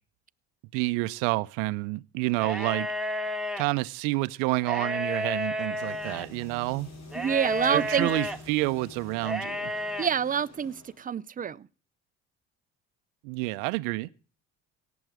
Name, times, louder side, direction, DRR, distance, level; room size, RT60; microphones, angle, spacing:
voice 1, 0.7-2.9 3.6-6.9 7.7-9.7 13.2-14.1, right 22 dB, 80° right, 0.6 m, -29 dB
sound 1, 2.3-3.6 4.6-6.3 7.1-8.4 9.2-10.1, left 1 dB, ahead, 1.1 m, -32 dB
sound 2, 5.7-11.1, left 2 dB, 55° left, 3.5 m, -48 dB
voice 2, 7.1-8.1 10.0-11.7, right 8 dB, 25° right, 0.5 m, -27 dB
17.5 x 7.1 x 4.8 m
hypercardioid pair, 65°, 32 cm